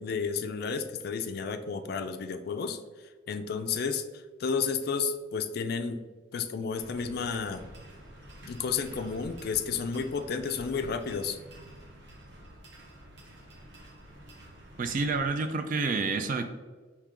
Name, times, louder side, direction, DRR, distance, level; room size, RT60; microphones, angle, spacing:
voice 1, 0.0-2.8 3.3-4.1 4.4-6.0 6.3-7.6 8.4-11.4, left 5 dB, 55° left, 8 dB, 0.3 m, -31 dB
sound 1, 6.8-15.3, right 1 dB, 60° right, 0.9 m, -49 dB
voice 2, 14.8-16.4, right 4 dB, 45° right, 7 dB, 0.3 m, -28 dB
4.5 x 2.9 x 3.6 m, 1.4 s
head